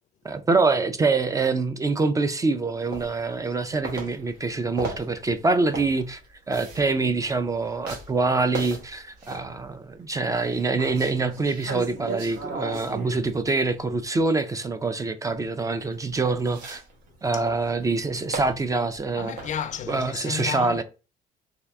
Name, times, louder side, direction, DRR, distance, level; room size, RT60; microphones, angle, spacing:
voice 1, 0.2-6.2 6.5-16.8 17.2-19.4 19.9-20.8, right 3 dB, 20° right, 0.4 m, -25 dB
sound 1, 2.9-3.6 3.8-9.7 10.3-14.2 15.9-20.1, right 3 dB, 85° right, 1.2 m, -37 dB
voice 2, 19.2-20.8, left 8 dB, 45° left, 0.4 m, -33 dB
3.5 x 2.6 x 3.4 m
cardioid pair, 110°, 17 cm